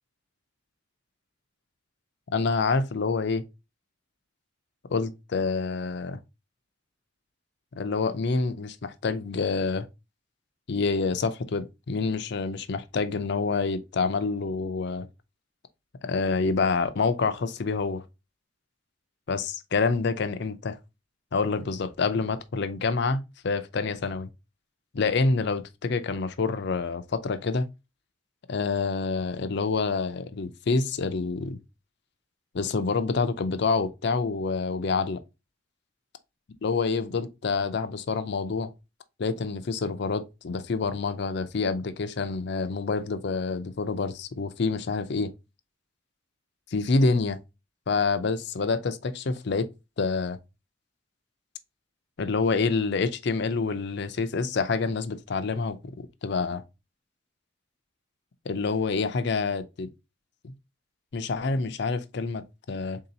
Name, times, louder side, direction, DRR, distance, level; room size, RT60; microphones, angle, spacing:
voice 1, 2.3-3.4 4.9-6.2 7.7-9.9 10.7-15.1 16.0-18.0 19.3-20.8 21.3-24.3 24.9-27.7 28.5-31.6 32.5-35.2 36.6-38.7 39.2-45.3 46.7-47.4 47.9-49.7 50.0-50.4 52.2-55.8 56.2-56.6 58.5-59.9 61.1-63.0, left 4 dB, 60° left, 0.5 m, -27 dB
3.8 x 2.8 x 3.9 m
head